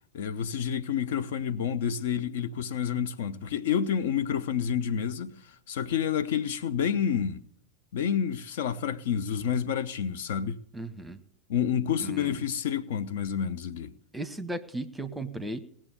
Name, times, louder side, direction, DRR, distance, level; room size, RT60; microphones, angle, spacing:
voice 1, 0.1-7.4 7.9-10.6 11.5-13.9, left 8 dB, 55° left, 0.6 m, -29 dB
voice 2, 10.7-11.2 12.0-12.4 14.1-15.6, right 2 dB, 5° right, 1.0 m, -36 dB
18.5 x 7.4 x 6.7 m
figure-of-eight pair, 90°, 0 cm